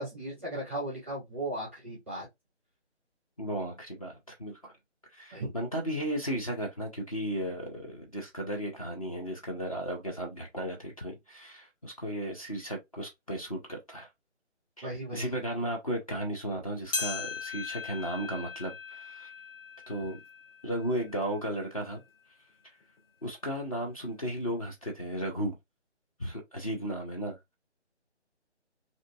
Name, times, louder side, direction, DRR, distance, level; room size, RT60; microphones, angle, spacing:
voice 1, 0.0-2.3 5.3-5.5 14.8-15.3, right 1 dB, 10° right, 0.6 m, -36 dB
voice 2, 3.4-4.7 5.1-14.1 14.8-19.3 19.9-20.2 20.6-22.0 23.2-25.6 26.2-27.6, equal, 30° left, 0.5 m, -35 dB
sound 1, 16.9-21.6 22.1-22.2 23.0-23.1 24.0-24.1, left 5 dB, 55° left, 0.9 m, -39 dB
2.6 x 2.4 x 2.3 m
figure-of-eight pair, 160°, 35 cm